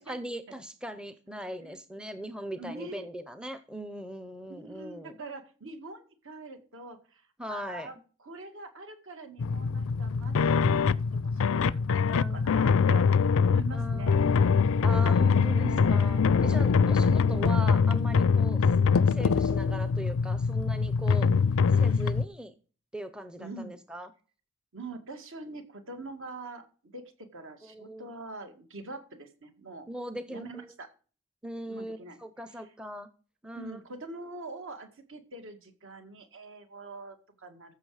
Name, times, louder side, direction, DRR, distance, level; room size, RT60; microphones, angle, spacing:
voice 1, 0.0-5.1 7.4-7.9 12.1-12.5 13.7-14.4 14.8-18.7 19.1-21.3 21.7-22.5 22.9-24.1 27.6-28.2 29.9-30.7 31.4-33.1 33.4-33.8, right 1 dB, 5° right, 11 dB, 0.6 m, -40 dB
voice 2, 2.6-3.1 4.5-8.0 8.2-14.1 15.1-16.1 17.1-17.7 23.4-23.8 24.7-26.7 26.9-29.9 30.3-30.9 31.7-32.2 33.5-37.7, right 3 dB, 60° right, 6 dB, 2.2 m, -43 dB
sound 1, 9.4-22.3, left 5 dB, 65° left, 0.4 m, -24 dB
14.5 x 6.5 x 4.9 m, 0.39 s
head